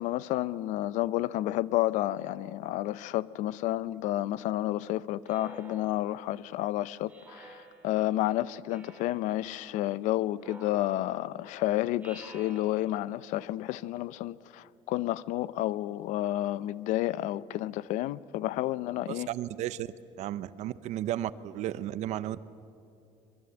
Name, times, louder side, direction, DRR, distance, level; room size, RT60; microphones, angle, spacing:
voice 1, 0.0-19.3, left 15 dB, 80° left, 19 dB, 0.6 m, -30 dB
Speech synthesizer, 5.2-6.4 7.1-8.1 8.7-9.4 10.4-11.3 12.0-13.2, right 3 dB, 10° right, 2.4 m, -51 dB
voice 2, 19.1-19.9 20.2-22.4, right 13 dB, 65° right, 16 dB, 0.8 m, -34 dB
24.5 x 22.5 x 8.0 m, 2.6 s
cardioid pair, 135°, 13 cm